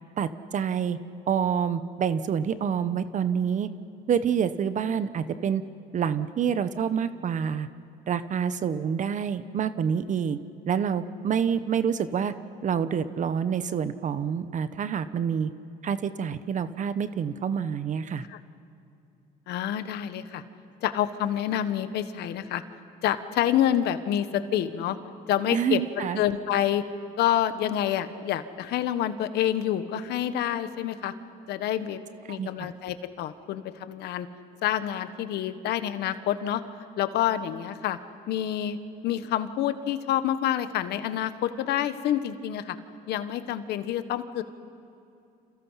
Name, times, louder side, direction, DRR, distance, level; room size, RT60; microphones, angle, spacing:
voice 1, 0.2-1.0 1.3-3.7 4.1-5.6 5.9-7.7 8.1-10.4 10.7-12.3 12.6-15.5 15.8-18.2 25.5-26.2 32.3-32.7, right 7 dB, 45° right, 12 dB, 1.0 m, -27 dB
voice 2, 19.5-20.4 20.8-22.6 23.0-25.0 25.3-26.8 27.2-31.1 31.5-32.0 32.3-34.3 34.6-36.6 37.0-38.0 38.3-38.8 39.0-42.8 43.1-44.4, left 11 dB, 75° left, 11 dB, 1.4 m, -27 dB
29.5 x 28.0 x 5.8 m, 2.6 s
cardioid pair, 110°, 17 cm